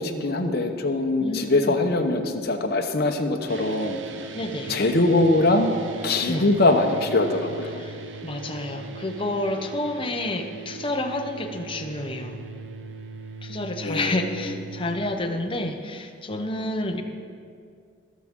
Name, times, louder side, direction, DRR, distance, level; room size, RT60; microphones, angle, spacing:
voice 1, 0.0-4.0 4.7-5.7 6.0-7.8 13.8-14.6, left 2 dB, 55° left, 4 dB, 0.9 m, -22 dB
voice 2, 1.2-1.8 4.3-4.8 6.3-6.5 7.8-12.4 13.4-17.0, left 1 dB, 25° left, 5 dB, 0.8 m, -29 dB
sound 1, 3.5-15.2, right 4 dB, 70° right, 0.7 m, -39 dB
20.5 x 7.3 x 3.7 m, 2.3 s
head